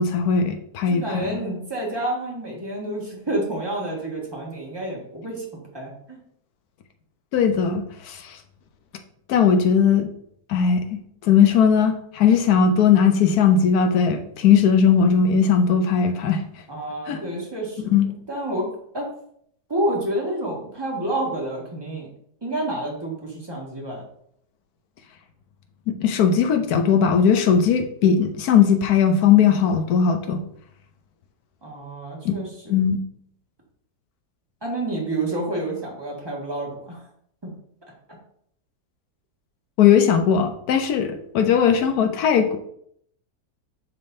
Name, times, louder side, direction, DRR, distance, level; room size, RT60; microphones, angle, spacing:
voice 1, 0.0-1.4 7.3-8.4 9.3-10.1 10.5-10.9 11.2-16.4 17.1-17.2 17.9-18.1 25.9-30.4 32.2-32.3 32.7-33.0 39.8-42.6, left 7 dB, 75° left, 5 dB, 1.1 m, -18 dB
voice 2, 0.9-5.4 5.7-6.2 16.7-17.9 18.3-19.1 19.7-22.1 22.4-24.0 31.6-32.7 34.6-37.1 37.4-37.5, right 1 dB, 15° right, -3 dB, 1.6 m, -29 dB
10.5 x 3.5 x 2.6 m, 0.68 s
omnidirectional pair, 1.7 m